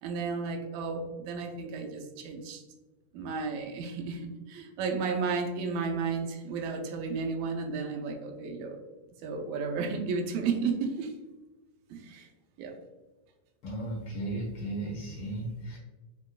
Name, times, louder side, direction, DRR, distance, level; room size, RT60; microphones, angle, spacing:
voice 1, 0.0-2.6 3.1-8.8 9.2-11.1 11.9-12.3 12.6-12.7, right 4 dB, 80° right, 3 dB, 1.7 m, -33 dB
voice 2, 13.6-15.8, right 1 dB, 55° left, -3 dB, 1.4 m, -35 dB
6.6 x 2.9 x 2.3 m, 1.2 s
omnidirectional pair, 3.7 m